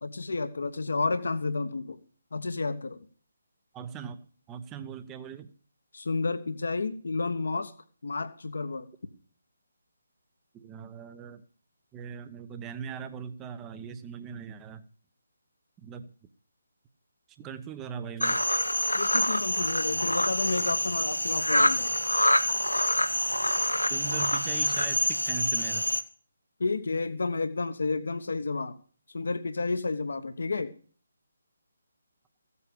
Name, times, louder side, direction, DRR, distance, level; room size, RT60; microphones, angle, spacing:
voice 1, 0.0-2.0 2.3-3.0 5.9-7.7 8.0-8.9 18.9-21.9 26.6-28.7 29.1-30.7, left 3 dB, 55° left, 10 dB, 1.1 m, -31 dB
voice 2, 3.7-5.5 10.5-11.4 11.9-14.8 15.8-16.1 17.4-18.4 23.9-25.9, right 7 dB, 15° right, 11 dB, 0.9 m, -40 dB
sound 1, 18.2-26.0, left 1 dB, 85° left, 1.0 m, -26 dB
15.0 x 8.4 x 6.9 m, 0.44 s
figure-of-eight pair, 145°, 0 cm